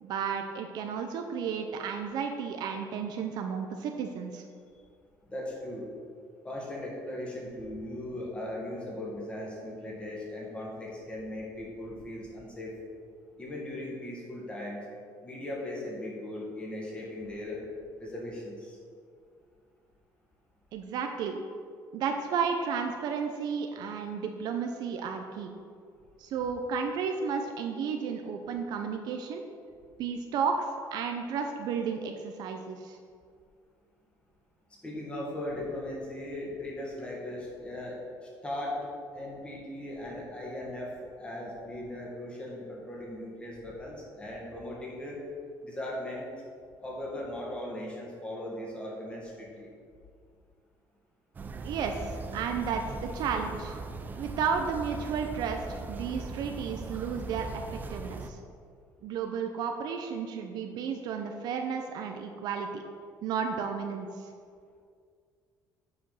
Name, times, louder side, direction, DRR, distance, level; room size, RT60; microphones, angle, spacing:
voice 1, 0.0-4.4 20.7-21.4 21.9-25.5 26.2-29.4 30.0-33.0 51.6-53.8 54.2-58.4 59.0-62.8 63.2-64.3, right 6 dB, 65° right, 4 dB, 0.6 m, -33 dB
voice 2, 5.3-5.9 6.4-12.8 13.4-14.8 15.2-17.6 18.0-18.8 34.8-38.0 38.4-38.8 39.1-45.2 45.6-46.3 46.8-49.7, left 1 dB, 15° left, -4 dB, 2.0 m, -38 dB
sound 1, 51.3-58.3, right 3 dB, 25° right, 0.5 m, -39 dB
8.5 x 5.0 x 5.6 m, 2.2 s
cardioid pair, 155°, 8 cm